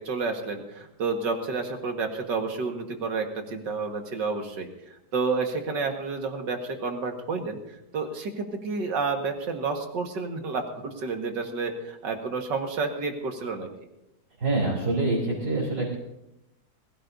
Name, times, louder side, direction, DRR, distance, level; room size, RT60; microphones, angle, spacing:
voice 1, 0.0-4.7 5.1-7.6 7.9-13.7, right 4 dB, 75° right, 3 dB, 2.4 m, -30 dB
voice 2, 14.4-15.9, right 2 dB, 60° right, -6 dB, 4.2 m, -25 dB
21.5 x 16.0 x 2.7 m, 0.88 s
omnidirectional pair, 1.9 m